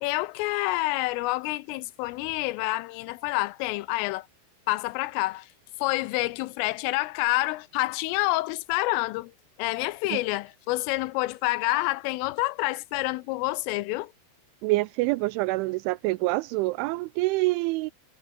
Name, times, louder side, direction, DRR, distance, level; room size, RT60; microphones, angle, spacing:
voice 1, 0.0-4.3 4.7-5.5 5.8-9.3 9.6-14.1, left 20 dB, 85° left, 3.3 m, -28 dB
voice 2, 14.6-17.9, right 22 dB, 85° right, 2.8 m, -26 dB
omnidirectional pair, 5.8 m